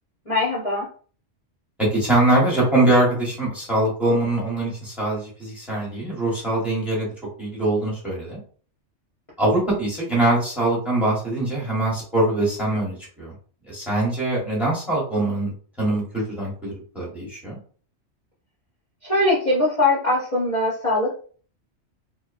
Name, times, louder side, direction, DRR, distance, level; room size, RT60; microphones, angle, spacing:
voice 1, 0.2-0.9 19.0-21.1, left 2 dB, 35° left, -7 dB, 0.7 m, -21 dB
voice 2, 1.8-7.1 7.4-8.4 9.4-13.3 13.7-15.5 15.8-17.6, right 2 dB, ahead, -4 dB, 0.9 m, -23 dB
2.9 x 2.1 x 2.4 m, 0.43 s
omnidirectional pair, 1.2 m